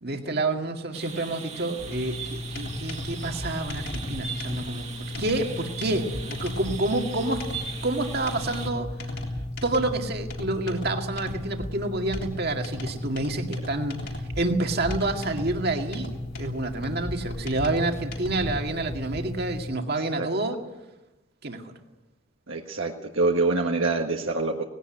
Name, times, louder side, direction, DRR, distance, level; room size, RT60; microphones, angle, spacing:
voice 1, 0.0-4.9 5.2-7.4 7.8-8.9 9.6-20.6 21.4-21.6, right 2 dB, 50° right, 4 dB, 2.0 m, -28 dB
sound 1, 0.9-8.7, right 5 dB, 30° right, 2.1 m, -39 dB
sound 2, 1.8-19.7, left 1 dB, 50° left, 3.4 m, -35 dB
voice 2, 22.5-24.6, right 3 dB, 65° right, 2 dB, 1.5 m, -25 dB
19.5 x 17.0 x 9.0 m, 1.0 s
head